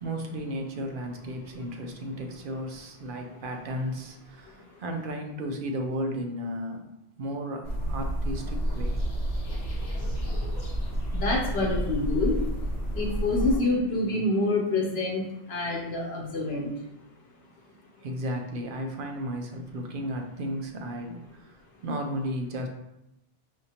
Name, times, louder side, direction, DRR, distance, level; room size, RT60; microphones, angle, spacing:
voice 1, 0.0-6.9 7.2-9.0 18.0-21.6 21.8-22.7, equal, 60° right, 3 dB, 0.7 m, -34 dB
sound 1, 7.6-13.6, equal, 45° left, 0.9 m, -30 dB
voice 2, 11.1-12.3 12.9-15.2 15.5-16.7, left 2 dB, 70° left, -2 dB, 1.1 m, -27 dB
5.0 x 2.6 x 2.8 m, 0.86 s
omnidirectional pair, 1.1 m